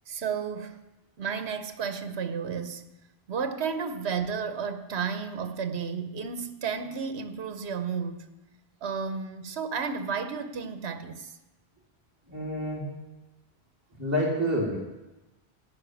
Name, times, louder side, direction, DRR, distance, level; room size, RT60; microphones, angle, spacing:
voice 1, 0.1-0.8 1.2-2.9 3.3-8.2 8.8-11.3, right 6 dB, 80° right, 9 dB, 1.2 m, -32 dB
voice 2, 12.3-12.8 14.0-14.8, equal, 15° right, -5 dB, 2.7 m, -28 dB
15.5 x 6.0 x 9.2 m, 1.0 s
omnidirectional pair, 1.1 m